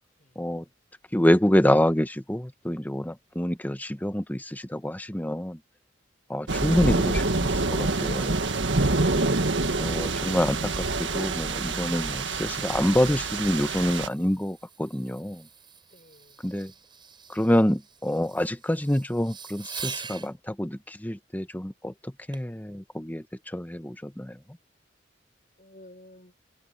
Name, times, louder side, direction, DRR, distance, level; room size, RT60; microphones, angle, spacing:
voice 1, 1.1-5.6 6.3-8.4 9.1-9.3 9.8-10.7 11.1-15.4 16.4-16.7 17.3-21.9 22.3-23.2 23.5-24.3, left 1 dB, 10° left, 1.1 m, -26 dB
sound 1, 6.5-14.1, right 3 dB, 75° right, 1.8 m, -26 dB
Fireworks, 9.6-20.3 22.3-22.6 23.2-23.3, right 6 dB, 25° right, 7.3 m, -46 dB
voice 2, 15.9-16.5 25.6-26.3, left 1 dB, 45° left, 6.1 m, -54 dB
open air
head